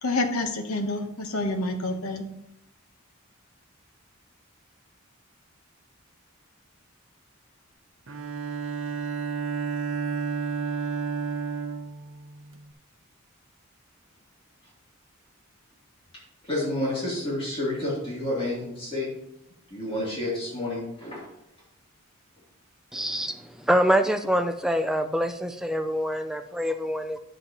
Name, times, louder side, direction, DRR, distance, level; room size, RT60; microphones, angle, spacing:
voice 1, 0.0-2.3, left 2 dB, 85° left, 6 dB, 1.1 m, -28 dB
Bowed string instrument, 8.1-12.7, right 5 dB, 70° right, 0.7 m, -31 dB
voice 2, 16.1-19.1 19.7-21.2, left 1 dB, 25° left, -6 dB, 3.0 m, -30 dB
voice 3, 22.9-27.2, equal, ahead, 7 dB, 0.4 m, -25 dB
10.5 x 7.9 x 3.0 m, 0.82 s
head